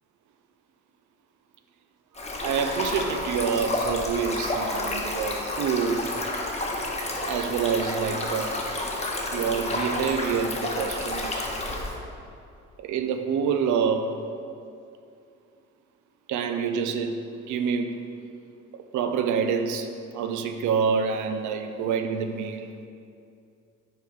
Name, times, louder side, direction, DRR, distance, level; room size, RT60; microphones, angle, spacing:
Stream, 2.1-11.9, left 2 dB, 20° left, 0.9 m, -30 dB
voice 1, 2.2-6.1 7.2-8.6 9.3-11.5 12.8-14.2 16.3-17.2 17.5-17.9 18.9-22.7, right 6 dB, 75° right, 8 dB, 0.5 m, -27 dB
5.3 x 3.9 x 5.0 m, 2.5 s
cardioid pair, 90°, 30 cm